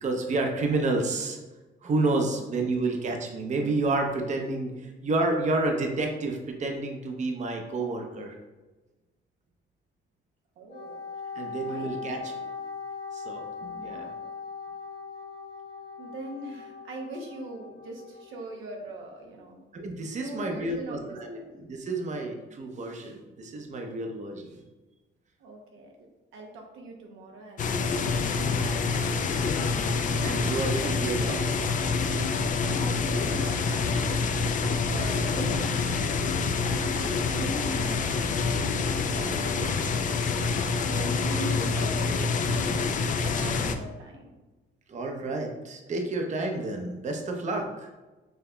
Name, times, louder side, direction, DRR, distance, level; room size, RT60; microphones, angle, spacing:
voice 1, 0.0-1.4 1.8-8.4 11.3-12.5 13.1-14.1 19.7-24.5 30.2-31.4 39.1-39.4 44.9-47.9, right 2 dB, 35° right, 3 dB, 0.6 m, -30 dB
voice 2, 2.1-2.5 10.6-11.0 11.6-12.3 13.7-14.2 16.0-19.6 20.1-21.5 25.4-25.9 26.3-28.6 28.9-30.0 32.6-34.3 34.6-40.6 40.9-42.9 43.2-44.3, right 1 dB, 90° right, 0 dB, 0.8 m, -42 dB
Wind instrument woodwind instrument, 10.7-18.4, left 5 dB, 70° left, 1.2 m, -40 dB
sound 1, 27.6-43.7, left 4 dB, 40° left, 0.4 m, -27 dB
5.5 x 2.8 x 2.2 m, 1.2 s
cardioid pair, 90°, 20 cm